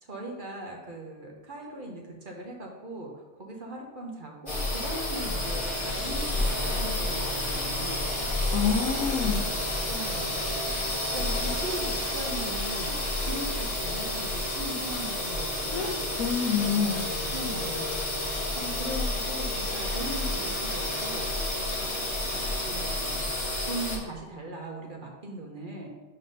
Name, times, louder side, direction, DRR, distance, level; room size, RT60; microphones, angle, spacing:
voice 1, 0.0-8.1 9.9-10.4 11.1-16.0 17.3-17.9 18.1-21.6 22.7-23.2 23.6-25.9, right 1 dB, 40° right, 0 dB, 1.0 m, -39 dB
sound 1, 4.5-24.0, left 1 dB, 20° left, 1.3 m, -30 dB
voice 2, 8.5-9.4 15.7-17.1, left 6 dB, 80° left, 0 dB, 1.2 m, -27 dB
5.4 x 4.2 x 5.3 m, 1.2 s
omnidirectional pair, 1.4 m